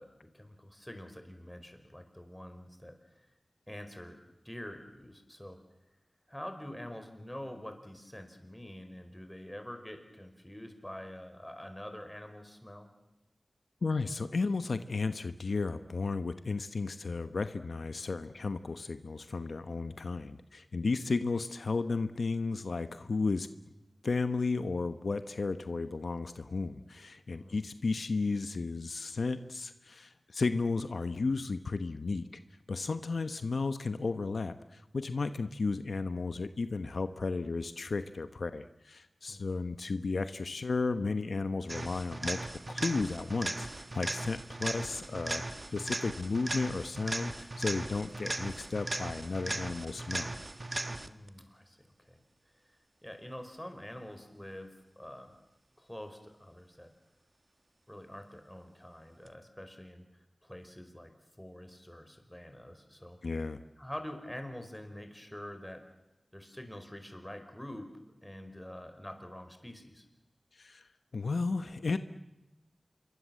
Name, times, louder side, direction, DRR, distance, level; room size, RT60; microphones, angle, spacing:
voice 1, 0.0-3.3 3.7-4.2 4.4-5.6 6.3-12.9 27.3-27.7 39.3-39.5 50.9-52.2 53.0-55.3 55.8-56.9 57.9-60.0 60.4-61.1 61.4-63.2 63.8-65.8 66.3-67.9 68.2-70.0, left 1 dB, 10° left, 7 dB, 4.8 m, -46 dB
voice 2, 13.8-23.5 24.0-32.3 32.7-42.4 42.7-43.7 43.9-50.3 63.2-63.6 70.5-70.9 71.1-72.0, left 3 dB, 85° left, 10 dB, 1.0 m, -33 dB
sound 1, 41.7-51.3 59.3-59.4, right 2 dB, 40° right, 1.3 m, -38 dB
27.0 x 23.5 x 7.7 m, 0.95 s
wide cardioid pair, 60°, 0 cm